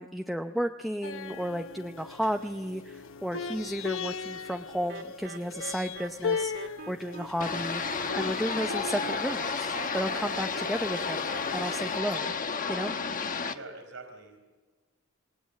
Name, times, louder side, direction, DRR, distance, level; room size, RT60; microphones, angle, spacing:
voice 1, 0.0-7.8 8.1-12.3 12.7-12.9, equal, ahead, 4 dB, 0.7 m, -33 dB
sound 1, 1.0-12.0, left 5 dB, 75° left, 1.0 m, -39 dB
sound 2, 4.9-12.3, right 4 dB, 55° right, 1.7 m, -44 dB
sound 3, 7.4-13.6, left 5 dB, 40° left, 1.1 m, -32 dB
voice 2, 13.4-14.4, right 3 dB, 75° right, 2 dB, 4.1 m, -45 dB
27.5 x 20.0 x 8.3 m, 1.4 s
head